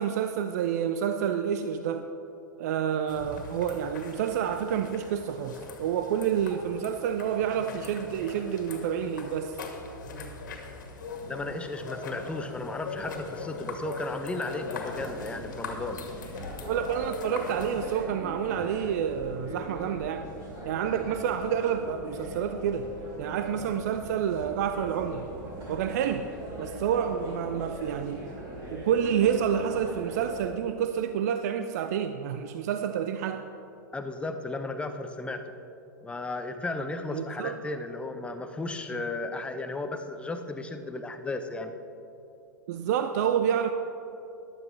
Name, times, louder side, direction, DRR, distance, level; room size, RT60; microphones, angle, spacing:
voice 1, 0.0-2.1 2.6-9.6 16.6-20.3 20.6-22.9 23.2-25.3 25.7-26.3 26.6-28.2 28.7-33.5 37.1-37.6 42.7-43.7, right 8 dB, 50° right, 8 dB, 0.5 m, -28 dB
sound 1, 3.1-18.0, left 4 dB, 65° left, 1.9 m, -41 dB
voice 2, 11.3-16.0 33.9-35.4 36.0-41.7, left 2 dB, 10° left, 7 dB, 0.7 m, -34 dB
sound 2, 14.7-30.5, equal, 35° right, 3.1 m, -41 dB
14.5 x 11.5 x 3.3 m, 2.9 s
figure-of-eight pair, 100°, 11 cm